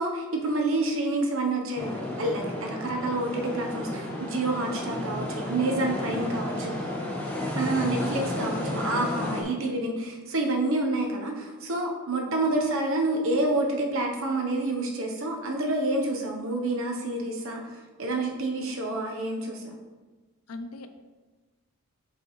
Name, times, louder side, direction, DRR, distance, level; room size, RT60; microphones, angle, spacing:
voice 1, 0.0-6.7 7.5-19.8, right 2 dB, 65° right, 1 dB, 1.0 m, -28 dB
sound 1, 1.8-9.4, left 1 dB, 10° left, 0.9 m, -32 dB
voice 2, 8.4-8.8 9.2-9.5 20.5-20.9, left 2 dB, 75° left, 8 dB, 0.6 m, -40 dB
7.1 x 5.3 x 3.2 m, 1.3 s
head